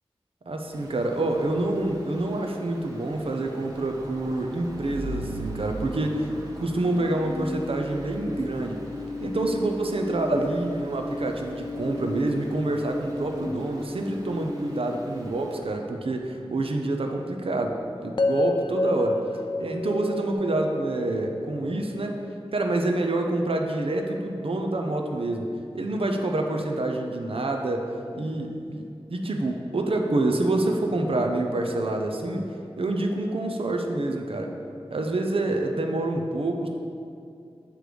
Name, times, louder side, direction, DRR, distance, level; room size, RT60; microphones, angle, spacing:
voice 1, 0.5-6.3 6.6-8.8 9.2-19.2 19.6-22.2 22.5-27.9 28.1-28.8 29.1-32.5 32.8-34.5 34.9-36.7, right 2 dB, 60° right, 3 dB, 0.7 m, -27 dB
Stream, 0.7-15.6, right 1 dB, 35° right, 1.3 m, -42 dB
sound 1, 4.8-15.9 17.6-20.3, left 1 dB, 5° right, 1.6 m, -37 dB
sound 2, 18.2-22.3, left 2 dB, 45° left, 0.3 m, -28 dB
7.7 x 3.3 x 5.0 m, 2.5 s
cardioid pair, 40°, 11 cm